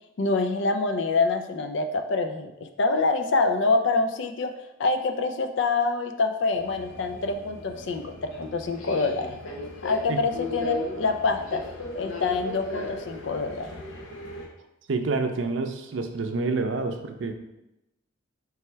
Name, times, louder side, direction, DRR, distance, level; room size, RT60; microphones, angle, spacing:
voice 1, 0.2-4.5 4.8-9.4 9.8-11.6 11.9-13.7, left 3 dB, 70° left, 7 dB, 0.4 m, -26 dB
Subway metro underground, 6.5-14.5, left 2 dB, 85° left, 0.8 m, -36 dB
voice 2, 14.9-17.3, right 3 dB, 75° right, 6 dB, 0.5 m, -28 dB
3.4 x 3.1 x 4.5 m, 0.90 s
head